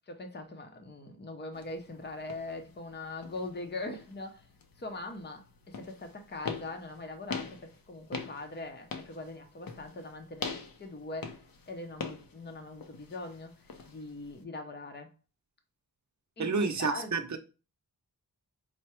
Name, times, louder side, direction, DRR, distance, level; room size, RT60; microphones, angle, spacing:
voice 1, 0.1-4.5 4.8-11.4 11.7-13.5 13.8-15.1 16.4-16.5 16.8-17.2, left 2 dB, 30° left, 0.7 m, -41 dB
sound 1, 1.5-14.4, left 5 dB, 65° left, 0.7 m, -44 dB
voice 2, 16.4-17.4, right 4 dB, 50° right, 0.7 m, -30 dB
4.7 x 2.1 x 4.2 m
wide cardioid pair, 130°, 37 cm